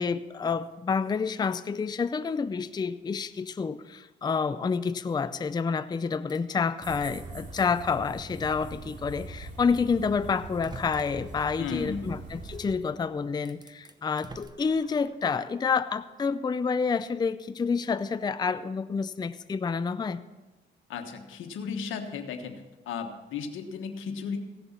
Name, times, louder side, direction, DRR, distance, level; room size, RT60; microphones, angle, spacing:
voice 1, 0.0-20.2, left 5 dB, 20° left, 12 dB, 0.4 m, -29 dB
sound 1, 6.3-7.9 8.5-8.6 9.8-9.9 10.5-11.4 12.9-13.0 13.4-15.3, right 3 dB, 20° right, 0.9 m, -49 dB
sound 2, 6.8-12.7, right 3 dB, 60° right, 2.6 m, -42 dB
voice 2, 11.6-12.1 20.9-24.4, left 6 dB, 85° left, 6 dB, 1.3 m, -35 dB
16.0 x 7.0 x 5.8 m, 1.1 s
cardioid pair, 90°, 20 cm